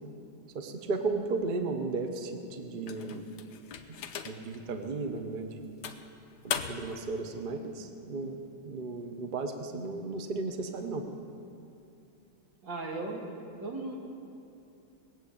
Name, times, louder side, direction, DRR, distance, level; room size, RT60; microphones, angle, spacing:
voice 1, 0.5-3.3 4.2-5.6 6.4-8.4 8.7-11.1, right 3 dB, 80° right, 6 dB, 0.4 m, -34 dB
sound 1, 2.9-4.6 5.1-5.3 5.8-7.0, left 7 dB, 65° left, 1.1 m, -38 dB
voice 2, 12.6-13.2 13.6-14.0, right 2 dB, 55° right, -1 dB, 2.6 m, -36 dB
20.0 x 7.5 x 8.6 m, 2.7 s
omnidirectional pair, 2.4 m